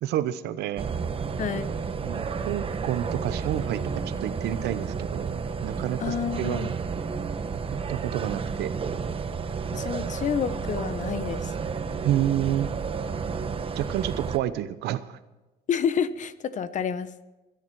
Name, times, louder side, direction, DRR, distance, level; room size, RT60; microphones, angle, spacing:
voice 1, 0.0-0.9 2.0-3.8 4.2-6.8 7.9-8.7 12.0-12.7 13.8-15.2, right 12 dB, 80° right, 14 dB, 0.9 m, -29 dB
sound 1, 0.8-14.4, right 5 dB, 35° right, 1.1 m, -31 dB
voice 2, 1.4-1.7 6.0-6.7 9.7-11.5 15.7-17.1, left 7 dB, 45° left, 13 dB, 1.1 m, -29 dB
23.0 x 10.5 x 4.7 m, 1.1 s
cardioid pair, 110°, 17 cm